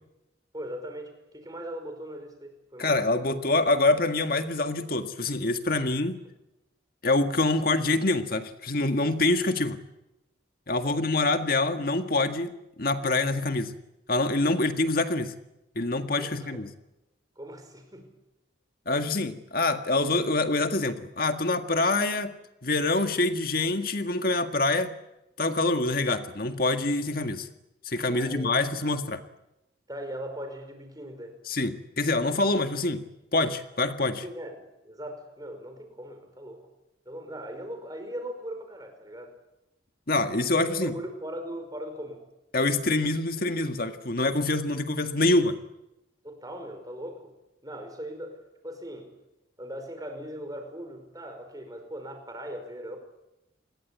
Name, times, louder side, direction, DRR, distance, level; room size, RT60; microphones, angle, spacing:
voice 1, 0.5-3.3 10.8-11.1 16.1-16.6 17.3-18.1 28.0-28.9 29.9-31.4 34.2-36.7 37.0-39.3 40.6-42.2 46.2-47.3 47.6-48.4 48.6-49.1 49.6-53.0, equal, 20° right, 6 dB, 5.1 m, -39 dB
voice 2, 2.8-6.2 7.0-9.8 10.7-12.5 12.8-13.7 14.1-15.3 15.8-16.7 18.9-22.3 22.6-24.9 25.4-27.5 27.9-29.2 31.5-33.0 33.3-34.2 40.1-40.9 42.5-45.6, left 2 dB, 50° left, 7 dB, 1.9 m, -25 dB
27.5 x 21.5 x 8.5 m, 0.92 s
head